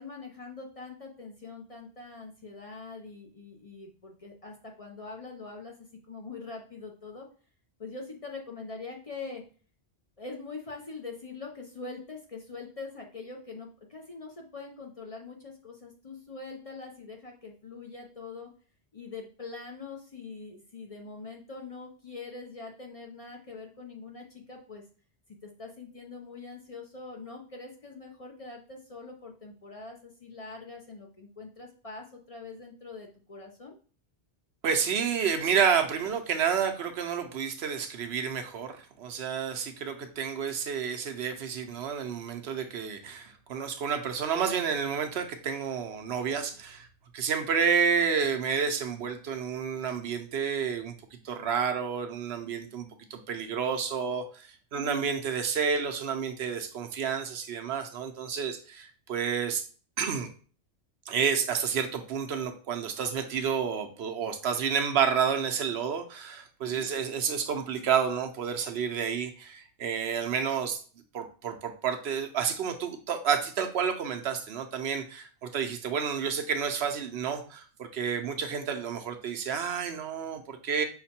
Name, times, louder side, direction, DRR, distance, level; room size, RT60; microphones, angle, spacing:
voice 1, 0.0-5.7 6.1-7.3 7.8-9.4 10.2-18.5 18.9-24.8 25.4-33.7 54.8-55.1 66.7-67.0, left 4 dB, 40° left, 1 dB, 0.6 m, -43 dB
voice 2, 34.6-46.9 47.1-59.6 60.0-60.3 61.1-70.8 71.1-80.8, right 7 dB, 75° right, 6 dB, 0.9 m, -30 dB
5.7 x 2.2 x 4.2 m, 0.40 s
omnidirectional pair, 1.1 m